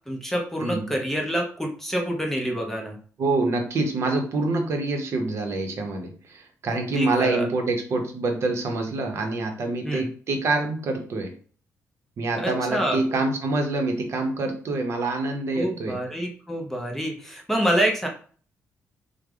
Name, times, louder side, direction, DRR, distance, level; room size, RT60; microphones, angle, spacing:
voice 1, 0.1-3.0 6.9-7.5 9.8-10.1 12.3-13.0 15.5-18.1, equal, 5° left, 1 dB, 0.6 m, -27 dB
voice 2, 0.6-1.0 3.2-11.3 12.2-16.0, right 2 dB, 55° right, 4 dB, 0.7 m, -26 dB
3.3 x 2.0 x 3.4 m, 0.43 s
cardioid pair, 135°, 6 cm